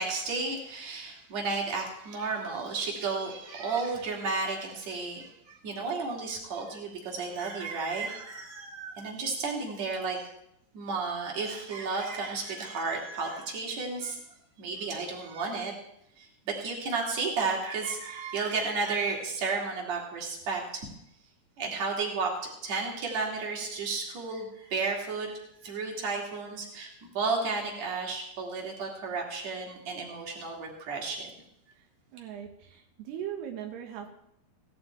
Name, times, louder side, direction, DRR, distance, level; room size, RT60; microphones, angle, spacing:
voice 1, 0.0-10.3 10.7-14.2 14.6-15.7 16.2-20.8 21.6-22.3 22.6-31.3, right 4 dB, 45° right, -1 dB, 3.8 m, -33 dB
voice 2, 32.1-34.1, right 9 dB, 85° right, 3 dB, 3.3 m, -39 dB
17.5 x 11.5 x 4.5 m, 0.77 s
omnidirectional pair, 4.6 m